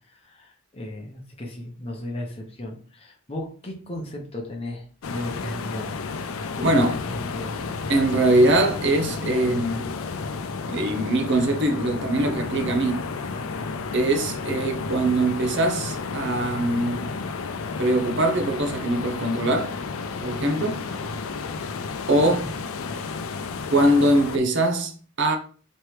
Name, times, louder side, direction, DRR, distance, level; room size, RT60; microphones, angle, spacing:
voice 1, 0.1-5.9 6.6-7.6 22.2-22.5, left 1 dB, 25° left, 0.9 m, -35 dB
sound 1, 5.0-24.4, left 4 dB, 75° left, 0.5 m, -32 dB
voice 2, 6.6-7.0 7.9-10.0 10.7-13.1 13.9-17.1 17.8-19.8 20.2-20.8 22.1-22.5 23.7-25.4, right 1 dB, 55° right, 0.8 m, -22 dB
4.4 x 3.2 x 3.2 m
head